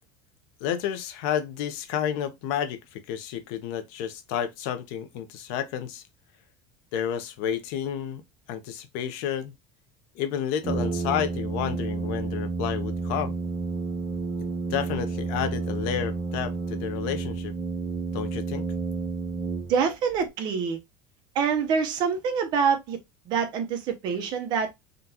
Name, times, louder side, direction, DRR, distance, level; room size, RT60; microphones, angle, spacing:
voice 1, 0.6-6.0 6.9-8.2 8.5-9.5 10.1-13.4 14.7-17.5 18.1-18.7, left 9 dB, 65° left, 0.6 m, -30 dB
Brass instrument, 10.6-20.1, right 4 dB, 25° right, 1.1 m, -30 dB
voice 2, 19.7-20.8 21.3-23.0 23.3-24.7, right 6 dB, 40° right, 0.6 m, -25 dB
3.7 x 2.3 x 2.7 m
cardioid pair, 170°, 11 cm